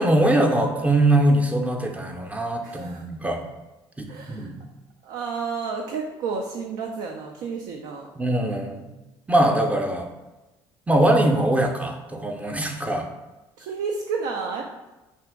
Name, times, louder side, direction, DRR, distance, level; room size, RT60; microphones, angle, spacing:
voice 1, 0.0-3.4 4.0-4.6 8.2-8.9 9.3-10.1 10.9-13.1, right 1 dB, 10° right, 3 dB, 0.5 m, -22 dB
voice 2, 2.6-3.0 4.1-4.5 5.0-8.1 13.6-14.6, right 5 dB, 70° right, 1 dB, 0.4 m, -31 dB
2.8 x 2.5 x 3.5 m, 1.1 s
hypercardioid pair, 60°, 12 cm